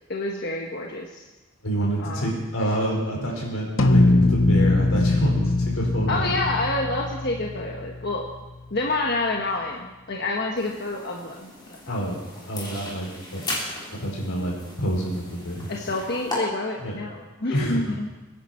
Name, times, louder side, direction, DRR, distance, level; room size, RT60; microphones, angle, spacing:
voice 1, 0.1-1.2 2.0-2.3 6.1-8.2 8.7-12.0 15.7-18.1, left 2 dB, 50° left, 0 dB, 1.3 m, -28 dB
voice 2, 1.6-6.3 11.9-12.2 12.5-13.4 13.9-15.7 16.8-17.0 17.5-18.0, right 1 dB, 90° left, -2 dB, 4.9 m, -27 dB
sound 1, 3.8-8.4, left 2 dB, 70° left, 0.9 m, -21 dB
sound 2, 10.6-16.4, left 2 dB, 20° left, 3.8 m, -37 dB
23.5 x 10.5 x 4.4 m, 1.1 s
head